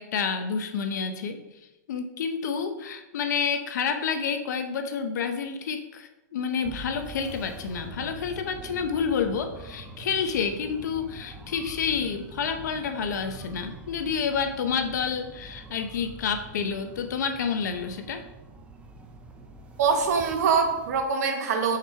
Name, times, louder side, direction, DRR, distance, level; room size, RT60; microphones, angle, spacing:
voice 1, 0.0-1.4 1.9-18.2, left 6 dB, 70° left, 7 dB, 0.8 m, -29 dB
sound 1, 6.6-21.1, right 2 dB, 10° right, 0.5 m, -44 dB
voice 2, 19.8-21.8, right 5 dB, 60° right, 4 dB, 1.2 m, -24 dB
5.2 x 4.9 x 4.5 m, 0.97 s
hypercardioid pair, 155°, 10 cm